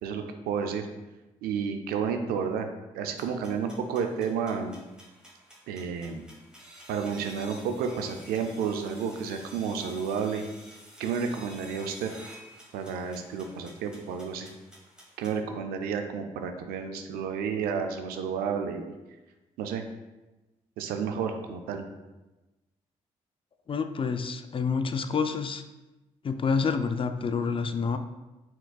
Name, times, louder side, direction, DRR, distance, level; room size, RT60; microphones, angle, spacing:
voice 1, 0.0-0.9 1.4-2.7 2.9-4.8 5.7-6.2 6.9-10.4 11.0-12.1 12.7-14.5 15.2-18.9 19.6-19.8 20.8-21.8, right 6 dB, 80° right, 6 dB, 0.4 m, -31 dB
sound 1, 3.2-15.4, equal, 5° right, 1.4 m, -51 dB
voice 2, 23.7-25.6 26.2-28.0, left 5 dB, 35° left, 9 dB, 0.4 m, -28 dB
4.4 x 3.8 x 2.3 m, 1.1 s
hypercardioid pair, 40°, 15 cm